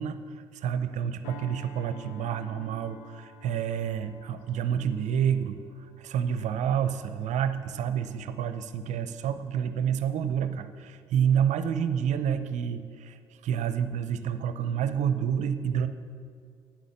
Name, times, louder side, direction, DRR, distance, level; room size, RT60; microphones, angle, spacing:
voice 1, 0.0-5.6 6.0-15.9, right 8 dB, 55° right, 11 dB, 0.7 m, -29 dB
sound 1, 1.2-10.1 10.6-10.8, left 8 dB, 70° left, 0.7 m, -52 dB
9.3 x 9.1 x 6.9 m, 2.2 s
hypercardioid pair, 50°, 14 cm